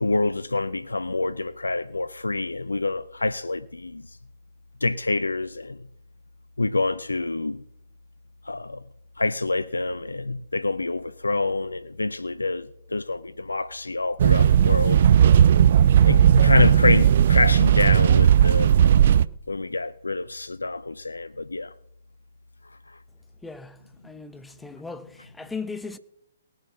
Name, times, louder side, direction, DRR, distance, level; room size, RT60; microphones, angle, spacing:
voice 1, 0.0-4.2 4.8-5.8 6.6-7.6 8.4-8.8 9.2-15.2 16.0-18.7 19.5-21.7 22.9-23.0, left 3 dB, 85° left, 0.5 m, -26 dB
sound 1, 14.2-19.3, right 9 dB, 50° right, 0.4 m, -16 dB
voice 2, 23.4-26.0, left 4 dB, 5° left, 0.7 m, -38 dB
18.5 x 7.4 x 6.2 m
figure-of-eight pair, 130°, 0 cm